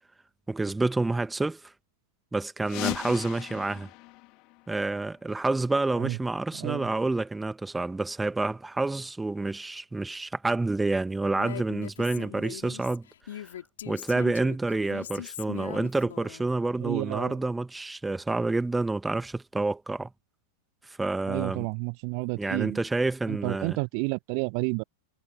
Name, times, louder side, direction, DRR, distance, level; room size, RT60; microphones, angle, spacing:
voice 1, 0.5-1.7 2.3-3.9 4.7-13.1 13.3-13.5 13.9-20.1 20.9-21.7 22.4-23.8, right 2 dB, 10° right, 1.8 m, -28 dB
sound 1, 2.6-5.2, left 25 dB, 40° left, 3.1 m, -37 dB
Female speech woman speaking, 11.3-16.5, left 10 dB, 60° left, 4.3 m, -40 dB
voice 2, 16.8-17.4 21.3-22.8 23.3-24.8, right 40 dB or more, 45° right, 0.7 m, -30 dB
figure-of-eight pair, 90°, 0 cm